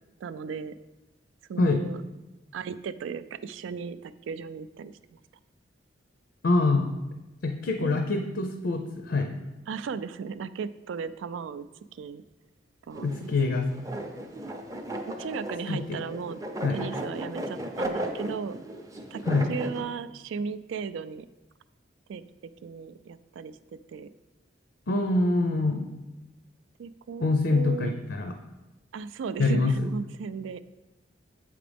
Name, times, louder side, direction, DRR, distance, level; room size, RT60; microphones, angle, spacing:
voice 1, 0.2-0.7 1.5-2.0 2.5-5.2 7.8-8.1 9.7-11.7 11.9-12.2 12.9-13.3 15.1-16.4 16.7-18.6 19.1-19.2 19.5-21.3 22.1-22.2 22.6-23.6 23.9-24.1 26.8-28.0 28.9-30.6, right 5 dB, 80° right, 14 dB, 0.3 m, -36 dB
voice 2, 6.4-6.9 7.4-9.5 13.0-13.7 15.7-16.0 16.6-16.8 19.2-19.5 24.9-25.9 27.2-28.4 29.4-29.9, left 2 dB, 65° left, 5 dB, 0.5 m, -25 dB
sound 1, 12.9-19.8, right 1 dB, 20° right, 0.5 m, -35 dB
7.6 x 5.0 x 3.4 m, 1.1 s
head